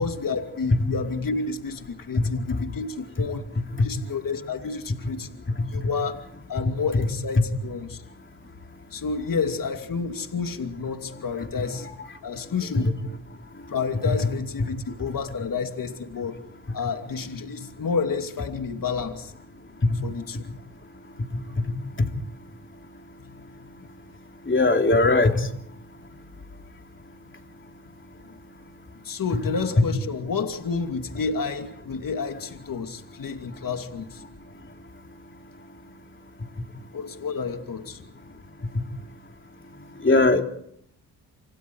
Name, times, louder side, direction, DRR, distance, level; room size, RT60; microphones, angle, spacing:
voice 1, 0.0-3.5 3.8-5.4 5.7-6.2 6.5-8.0 8.9-11.9 12.2-12.9 13.7-16.4 16.7-19.3 20.0-20.4 23.2-23.7 29.0-34.2 36.9-38.1, left 5 dB, 55° left, 5 dB, 2.7 m, -30 dB
voice 2, 21.3-21.7 24.5-25.5 40.0-40.4, left 2 dB, 30° left, 4 dB, 3.5 m, -20 dB
28.0 x 27.0 x 4.8 m, 0.71 s
cardioid pair, 70°, 40 cm